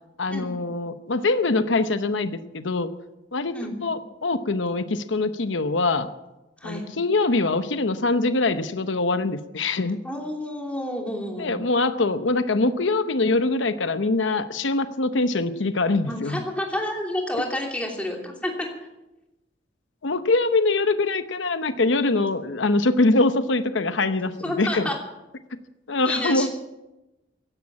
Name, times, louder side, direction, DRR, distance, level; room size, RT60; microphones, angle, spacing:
voice 1, 0.2-2.9 3.3-6.1 6.6-10.0 11.4-16.4 20.0-24.9 25.9-26.5, left 3 dB, 85° left, 10 dB, 0.8 m, -23 dB
voice 2, 10.0-11.5 16.1-18.7 24.4-25.0 26.0-26.5, left 1 dB, 5° left, 0 dB, 2.9 m, -29 dB
16.0 x 10.5 x 8.5 m, 1.0 s
head